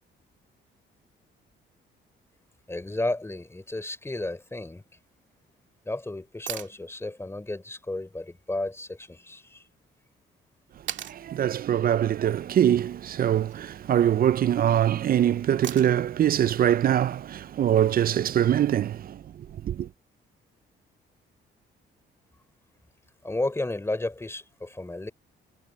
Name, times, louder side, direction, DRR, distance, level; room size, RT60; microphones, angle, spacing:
voice 1, 2.7-4.8 5.8-9.6 23.2-25.1, left 2 dB, 10° left, 3.8 m, -32 dB
sound 1, 6.5-6.8 9.0-9.1 10.9-11.2 13.2-13.6 15.6-16.1 18.2-18.3, right 10 dB, 65° right, 2.5 m, -37 dB
voice 2, 10.9-19.9, right 10 dB, 50° right, 0.4 m, -23 dB
cardioid pair, 90°, 20 cm